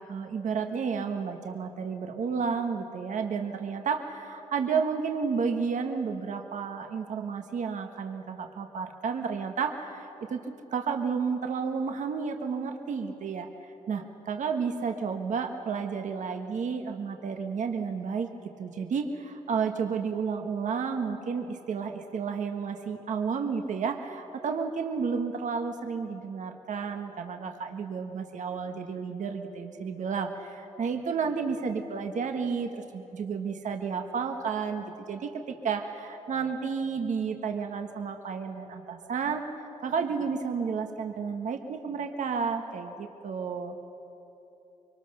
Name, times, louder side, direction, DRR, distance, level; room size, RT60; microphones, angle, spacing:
voice 1, 0.0-10.4 10.7-13.5 13.9-18.3 18.6-39.5 39.8-43.8, right 5 dB, 75° right, 5 dB, 1.4 m, -31 dB
24.5 x 24.0 x 6.7 m, 3.0 s
wide cardioid pair, 125°, 13 cm